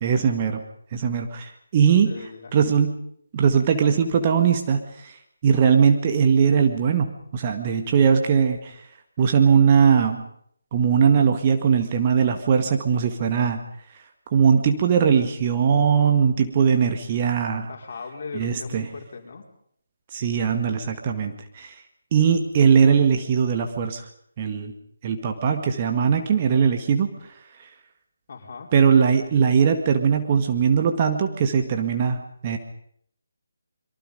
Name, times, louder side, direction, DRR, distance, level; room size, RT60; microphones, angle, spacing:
voice 1, 0.0-0.6 0.9-2.1 2.5-3.0 3.3-5.2 5.4-7.1 7.3-8.8 9.2-10.2 10.7-13.6 14.3-17.7 18.3-18.9 20.1-21.7 22.1-24.0 24.4-24.7 25.0-27.1 28.7-32.6, right 6 dB, 30° right, 5 dB, 1.9 m, -20 dB
voice 2, 2.0-2.5 17.7-19.4 28.3-28.7, left 4 dB, 40° left, 1 dB, 4.4 m, -38 dB
26.0 x 23.0 x 5.3 m, 0.65 s
figure-of-eight pair, 150°, 0 cm